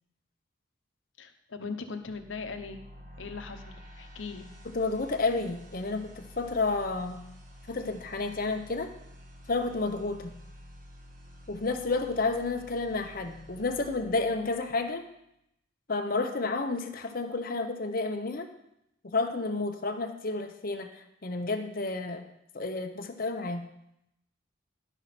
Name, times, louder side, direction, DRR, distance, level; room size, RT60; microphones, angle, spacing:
voice 1, 1.2-2.8 3.2-4.5, left 4 dB, 80° left, 7 dB, 0.9 m, -39 dB
sound 1, 2.0-15.1, equal, 40° right, 1.3 m, -50 dB
voice 2, 4.7-7.2 7.7-8.9 9.5-10.3 11.5-15.0 15.9-18.5 19.1-22.2 22.5-23.6, left 3 dB, 50° left, 6 dB, 0.9 m, -31 dB
11.0 x 5.8 x 5.9 m, 0.81 s
head